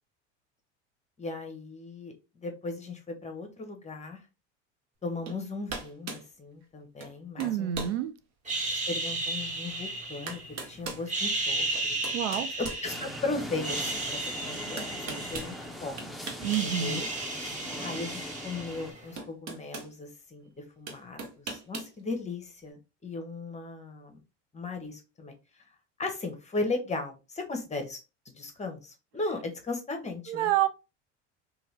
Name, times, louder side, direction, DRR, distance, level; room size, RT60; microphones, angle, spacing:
voice 1, 1.2-4.2 5.0-8.0 8.9-12.0 12.6-15.6 15.8-17.1 17.8-24.2 24.5-25.3 26.0-28.0 28.4-30.5, left 3 dB, 20° left, 0.9 m, -37 dB
sound 1, 5.3-5.4 5.7-6.3 7.0-7.1 7.4-8.0 8.6-8.7 9.7-9.8 10.3-11.1 11.7-13.4 14.8-15.5 16.0-16.7 17.0-17.1 18.5-18.6 19.2-19.9 20.9-21.9, right 4 dB, 45° right, 1.0 m, -39 dB
voice 2, 7.4-8.1 12.1-12.5 16.4-17.0 30.3-30.7, right 12 dB, 80° right, 0.5 m, -28 dB
sound 2, 8.5-10.6 11.0-13.2 13.5-15.9 16.2-19.1, right 2 dB, 20° right, 1.4 m, -34 dB
sound 3, 12.8-18.9, equal, ahead, 0.6 m, -41 dB
2.8 x 2.4 x 3.2 m
hypercardioid pair, 85°, 36 cm